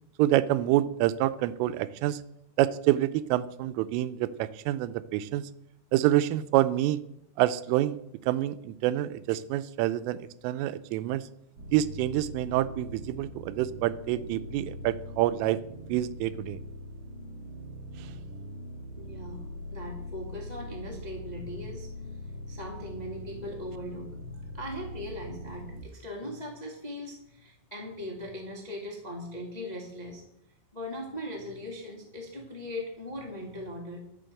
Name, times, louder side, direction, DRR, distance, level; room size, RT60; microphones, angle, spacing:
voice 1, 0.2-2.2 2.6-5.5 5.9-7.0 7.4-8.0 8.3-11.3 11.7-15.6 15.9-16.6, right 14 dB, 85° right, 14 dB, 3.2 m, -27 dB
sound 1, 11.6-25.8, left 1 dB, 40° right, 2.6 m, -42 dB
voice 2, 19.0-19.4 19.7-30.2 30.7-34.0, left 1 dB, 15° left, 0 dB, 1.3 m, -39 dB
12.5 x 7.1 x 7.7 m, 0.77 s
omnidirectional pair, 5.7 m